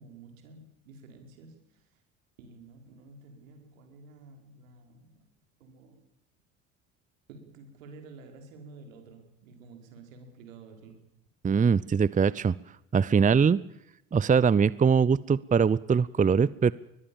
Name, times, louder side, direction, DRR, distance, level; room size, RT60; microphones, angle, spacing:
voice 1, 0.0-2.0 2.4-5.3 5.6-6.0 7.3-11.0, right 3 dB, 80° right, 5 dB, 4.9 m, -51 dB
voice 2, 11.4-12.5 12.9-13.6 14.1-16.7, right 6 dB, 20° right, 21 dB, 0.7 m, -22 dB
22.0 x 21.0 x 7.2 m, 0.83 s
hypercardioid pair, 60°, 39 cm